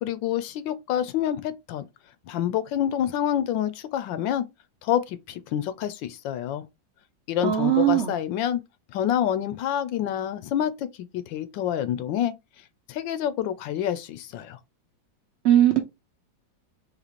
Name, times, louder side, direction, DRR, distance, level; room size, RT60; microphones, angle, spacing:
voice 1, 0.0-1.9 2.3-4.4 4.8-6.6 7.3-8.6 8.9-10.9 11.1-12.3 12.9-14.6, left 10 dB, 85° left, 1.3 m, -27 dB
voice 2, 7.4-8.1 15.4-15.8, right 12 dB, 75° right, 0.6 m, -19 dB
4.1 x 3.0 x 3.0 m
omnidirectional pair, 2.0 m